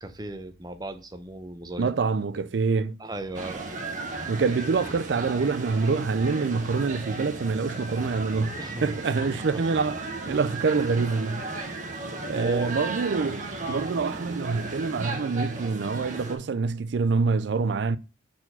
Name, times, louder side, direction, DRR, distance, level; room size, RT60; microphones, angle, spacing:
voice 1, 0.0-1.9 3.0-3.6 8.6-8.9 9.3-9.6 12.3-12.7, right 2 dB, 20° right, 0.7 m, -36 dB
voice 2, 1.8-3.0 4.3-11.4 12.3-18.0, right 4 dB, 70° right, 0.4 m, -26 dB
sound 1, 3.3-16.4, right 2 dB, 45° right, 1.1 m, -35 dB
4.5 x 4.3 x 5.6 m
head